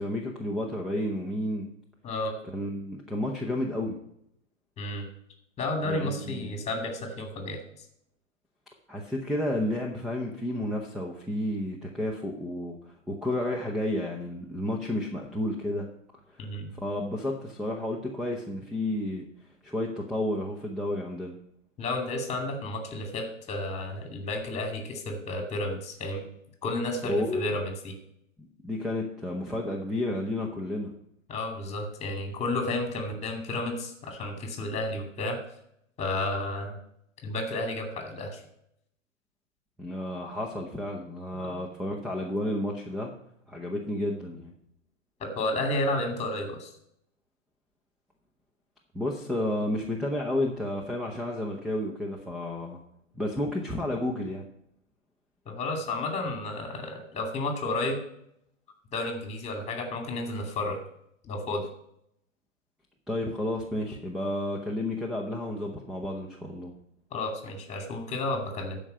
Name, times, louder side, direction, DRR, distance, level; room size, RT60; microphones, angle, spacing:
voice 1, 0.0-1.7 2.4-4.0 5.8-6.6 8.9-15.9 16.3-16.4 16.7-19.3 19.6-21.4 27.1-27.5 28.6-30.9 39.8-43.1 43.5-44.5 48.9-52.8 53.1-54.5 63.1-66.7, left 1 dB, ahead, 0 dB, 0.8 m, -31 dB
voice 2, 2.0-2.3 4.8-5.0 5.6-7.6 16.4-16.7 21.8-26.3 26.6-27.9 31.3-35.4 36.0-36.8 37.2-38.4 41.4-41.6 45.2-46.7 55.5-58.0 58.9-60.8 61.2-61.6 67.1-68.8, left 2 dB, 15° left, 4 dB, 2.5 m, -32 dB
12.0 x 5.1 x 6.9 m, 0.73 s
hypercardioid pair, 120°, 39 cm